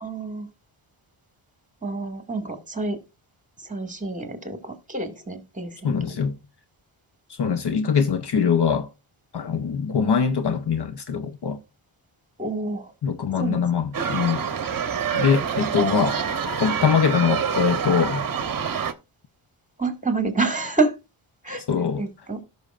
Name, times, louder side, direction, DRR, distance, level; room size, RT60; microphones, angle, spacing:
voice 1, 0.0-0.5 1.8-3.0 3.6-6.0 12.4-12.9 13.4-13.6 19.8-20.9 21.4-21.6 22.0-22.4, right 3 dB, 15° right, 2.1 m, -27 dB
voice 2, 5.8-6.4 7.4-8.9 9.3-11.6 13.0-14.5 14.7-16.2 16.6-18.2 21.7-22.0, left 6 dB, 50° left, 0.9 m, -23 dB
sound 1, 13.9-18.9, right 7 dB, 45° right, 1.0 m, -26 dB
17.0 x 6.3 x 2.5 m
cardioid pair, 80°, 50 cm